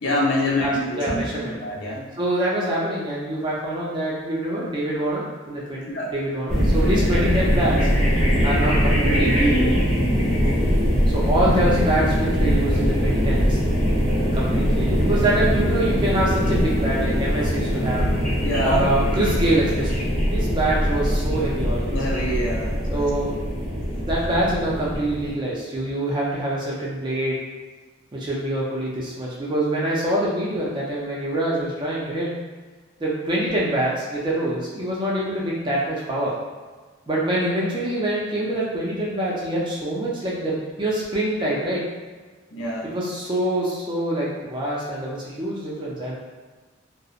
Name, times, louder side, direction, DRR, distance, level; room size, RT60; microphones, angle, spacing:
voice 1, 0.0-2.1 5.9-6.1 10.4-10.7 18.4-18.8 21.9-23.1 23.6-23.7 42.5-42.9, left 1 dB, 65° left, -3 dB, 0.5 m, -26 dB
voice 2, 0.6-1.6 2.2-7.8 8.4-9.7 11.1-13.6 14.3-18.1 18.6-22.0 22.9-23.4 24.0-27.4 28.1-32.3 33.0-36.3 37.1-41.8 42.8-46.2, right 1 dB, 20° right, -6 dB, 0.4 m, -25 dB
sound 1, 6.5-25.3, equal, 5° left, 0.8 m, -22 dB
2.8 x 2.0 x 2.4 m, 1.4 s
head